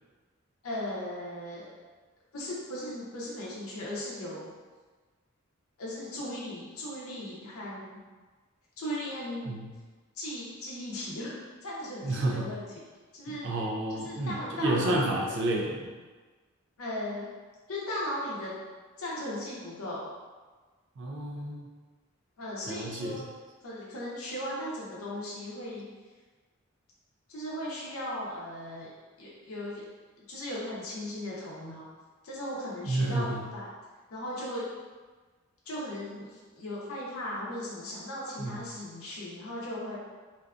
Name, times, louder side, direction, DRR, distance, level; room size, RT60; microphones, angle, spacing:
voice 1, 0.6-1.7 2.3-4.5 5.8-8.0 8.8-9.5 10.1-11.3 11.6-12.6 13.1-13.5 14.0-15.4 16.8-17.3 17.7-18.5 19.0-20.1 22.4-23.2 23.6-25.9 27.3-28.9 29.2-29.9 30.3-31.8 32.2-33.7 34.1-34.7 35.7-40.0, left 1 dB, 85° left, -6 dB, 0.7 m, -37 dB
voice 2, 12.0-12.6 13.4-15.9 21.0-21.7 22.7-23.3 32.8-33.5 38.4-38.6, right 1 dB, 60° right, 0 dB, 0.4 m, -30 dB
2.6 x 2.3 x 2.4 m, 1.4 s
head